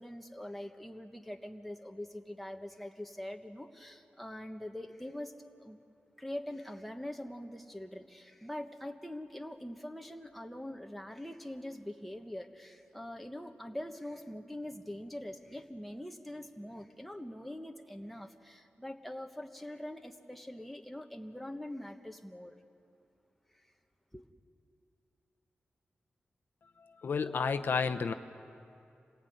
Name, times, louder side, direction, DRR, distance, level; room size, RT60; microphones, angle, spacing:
voice 1, 0.0-5.3 5.6-5.8 6.2-22.6 23.5-23.6 24.1-24.2, left 1 dB, ahead, 4 dB, 1.2 m, -43 dB
voice 2, 27.0-28.1, left 5 dB, 70° left, 8 dB, 0.8 m, -30 dB
27.0 x 19.0 x 9.3 m, 2.6 s
wide cardioid pair, 140°, 4 cm